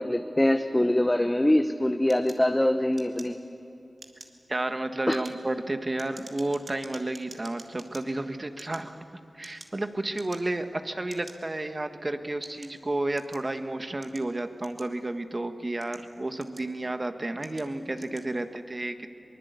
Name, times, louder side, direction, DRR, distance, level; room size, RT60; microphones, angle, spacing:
voice 1, 0.0-3.4 5.1-5.2, left 1 dB, 20° left, 7 dB, 1.0 m, -24 dB
sound 1, 2.1-3.6 3.9-4.4 4.9-8.0 8.5-9.8 10.1-10.6 11.1-11.4 12.0-13.5 14.0-15.2 15.7-16.9 17.4-17.7 17.9-18.3, right 2 dB, 55° right, 2.4 m, -49 dB
voice 2, 4.5-9.0 9.3-19.1, right 2 dB, 40° right, 7 dB, 1.5 m, -31 dB
23.0 x 21.0 x 8.3 m, 2.9 s
cardioid pair, 40°, 0 cm